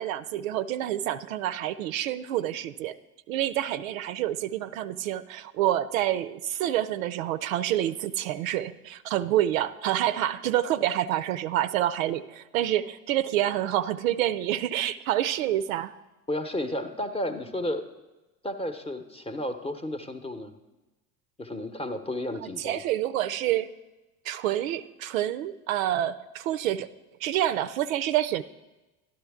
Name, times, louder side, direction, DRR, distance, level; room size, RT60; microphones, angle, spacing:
voice 1, 0.0-3.0 3.3-15.9 22.6-23.7 24.3-26.9 27.2-28.4, right 12 dB, 70° right, 13 dB, 0.5 m, -27 dB
voice 2, 16.3-17.8 18.4-20.5 21.4-22.8, left 1 dB, 15° left, 8 dB, 0.8 m, -32 dB
12.5 x 11.5 x 3.5 m, 1.1 s
figure-of-eight pair, 65°, 42 cm